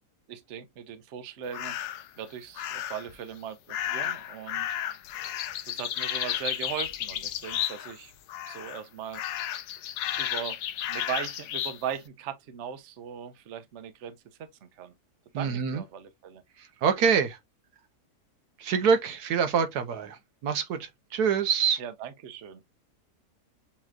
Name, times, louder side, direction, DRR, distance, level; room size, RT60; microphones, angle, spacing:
voice 1, 0.3-1.8 2.2-4.8 5.6-8.1 8.5-9.6 10.2-10.6 10.9-14.9 15.3-16.4 21.8-22.7, right 8 dB, 55° right, 1.0 m, -39 dB
sound 1, 1.5-2.1 2.6-3.1 3.7-8.0 8.3-8.8 9.1-11.8, left 11 dB, 80° left, 1.2 m, -33 dB
voice 2, 15.3-15.8 16.6-17.4 18.6-21.8, right 6 dB, 75° right, 1.3 m, -26 dB
7.2 x 3.0 x 2.3 m
omnidirectional pair, 1.7 m